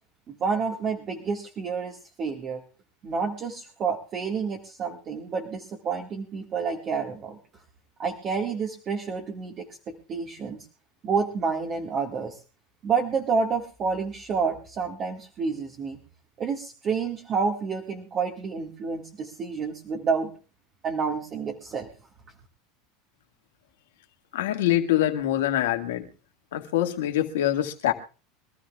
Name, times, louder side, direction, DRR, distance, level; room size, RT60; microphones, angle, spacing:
voice 1, 0.3-2.6 3.0-7.4 8.0-10.7 11.0-12.4 12.8-16.0 16.4-20.3 20.8-21.9, right 5 dB, 35° right, 0 dB, 2.0 m, -29 dB
voice 2, 24.3-26.1 26.5-27.9, left 13 dB, 85° left, 4 dB, 2.0 m, -24 dB
24.0 x 13.5 x 2.4 m, 0.35 s
supercardioid pair, 120°, 0 cm